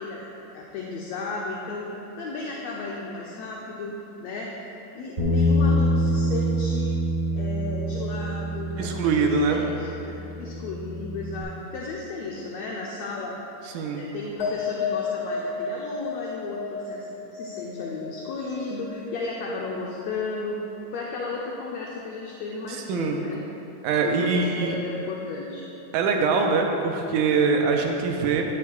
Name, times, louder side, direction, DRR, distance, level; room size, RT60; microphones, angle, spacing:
voice 1, 0.0-1.9 2.2-4.5 4.9-7.0 7.3-13.4 13.9-20.6 20.9-23.4 24.0-25.6, left 3 dB, 75° left, -3 dB, 1.7 m, -34 dB
Bass guitar, 5.2-11.4, equal, 35° right, 1.1 m, -26 dB
voice 2, 8.8-9.6 13.6-14.1 22.7-23.3 23.8-24.8 25.9-28.4, right 4 dB, 85° right, 2 dB, 2.2 m, -23 dB
sound 1, 14.4-21.1 21.4-22.0, left 5 dB, 40° left, 1.8 m, -34 dB
13.0 x 9.6 x 2.3 m, 3.0 s
omnidirectional pair, 3.6 m